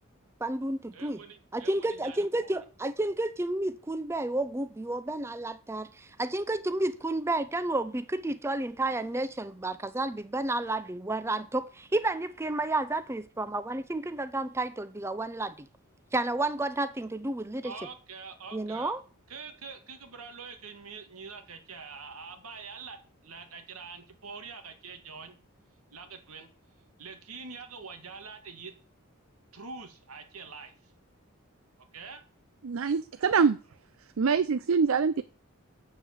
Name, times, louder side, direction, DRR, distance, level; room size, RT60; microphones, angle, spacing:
voice 1, 0.4-1.2 1.5-15.7 16.1-17.7 18.5-19.0, right 2 dB, 10° right, 0.5 m, -31 dB
voice 2, 0.9-2.6 17.6-18.9 19.3-23.0 23.2-25.3 25.9-26.5 27.0-28.7 29.5-30.7 31.9-32.2, right 5 dB, 90° right, 1.9 m, -45 dB
voice 3, 32.6-33.6 34.2-35.2, right 5 dB, 70° right, 0.5 m, -24 dB
8.3 x 7.2 x 7.3 m
head